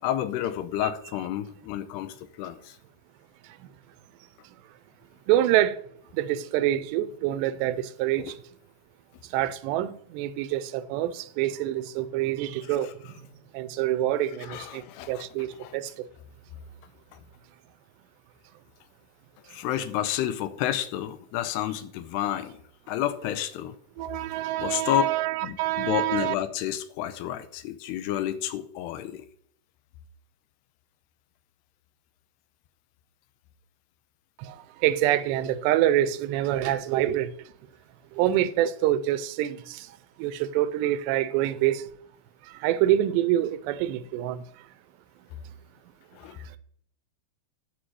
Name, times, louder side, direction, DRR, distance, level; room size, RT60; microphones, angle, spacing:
voice 1, 0.0-2.8 8.2-8.3 12.7-12.9 14.4-15.3 15.6-15.8 17.1-17.2 19.5-22.6 22.9-23.8 24.6-25.1 25.4-29.3 46.1-46.4, left 12 dB, 85° left, 2.7 m, -30 dB
voice 2, 5.3-5.8 6.1-8.3 9.3-12.9 13.5-14.8 15.1-16.1 24.0-26.4 34.4-34.6 34.8-37.3 38.2-39.9 40.2-41.8 42.6-44.4, right 13 dB, 85° right, 2.8 m, -26 dB
10.0 x 4.8 x 7.6 m
omnidirectional pair, 4.9 m